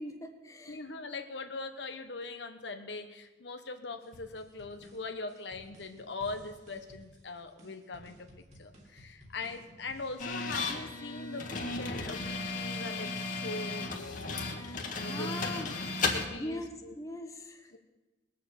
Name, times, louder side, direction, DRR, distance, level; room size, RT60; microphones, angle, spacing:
voice 1, 0.0-0.8 15.0-17.7, left 1 dB, 20° left, 5 dB, 1.4 m, -42 dB
voice 2, 0.7-15.7 16.0-16.9 17.7-17.8, left 3 dB, 75° left, 6 dB, 1.1 m, -42 dB
sound 1, 4.0-10.8, equal, 40° right, 2.6 m, -56 dB
sound 2, 10.2-16.3, left 3 dB, 45° left, 1.8 m, -35 dB
20.0 x 7.3 x 8.2 m, 1.1 s
head